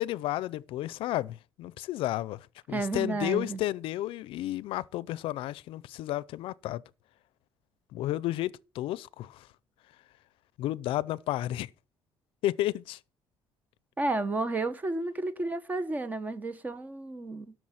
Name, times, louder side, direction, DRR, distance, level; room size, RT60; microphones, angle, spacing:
voice 1, 0.0-2.4 2.7-6.8 7.9-9.4 10.6-11.7 12.4-13.0, left 15 dB, 75° left, 0.5 m, -32 dB
voice 2, 2.7-3.6 14.0-17.5, right 2 dB, 20° right, 1.1 m, -32 dB
13.0 x 6.2 x 6.3 m
cardioid pair, 165°, 9 cm